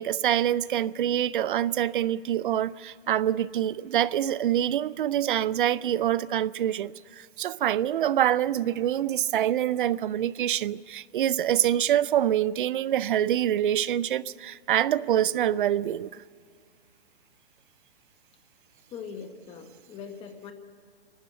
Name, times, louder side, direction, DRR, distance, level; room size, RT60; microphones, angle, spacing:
voice 1, 0.0-16.2, right 11 dB, 55° right, 0.5 m, -25 dB
voice 2, 18.9-20.5, left 6 dB, 15° left, 1.2 m, -41 dB
26.5 x 12.0 x 8.2 m
hypercardioid pair, 155°, 32 cm